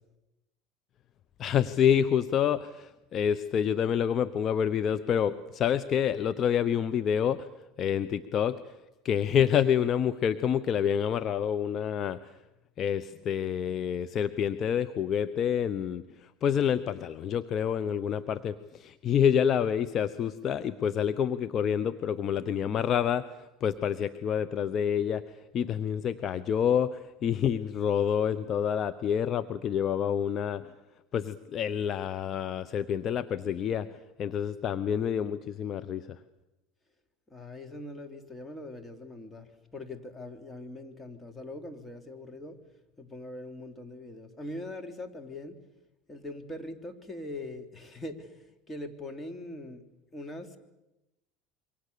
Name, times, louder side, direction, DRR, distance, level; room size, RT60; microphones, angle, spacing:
voice 1, 1.4-7.5 7.8-8.6 9.0-12.2 12.8-16.0 16.4-23.3 23.6-25.2 25.5-30.7 31.1-33.9 34.2-36.2, left 8 dB, 45° left, 12 dB, 1.0 m, -27 dB
voice 2, 37.3-42.6 43.0-45.6 46.1-49.8 50.1-50.6, left 1 dB, 15° left, 5 dB, 3.1 m, -42 dB
27.0 x 24.0 x 6.9 m, 0.96 s
hypercardioid pair, 85°, 0 cm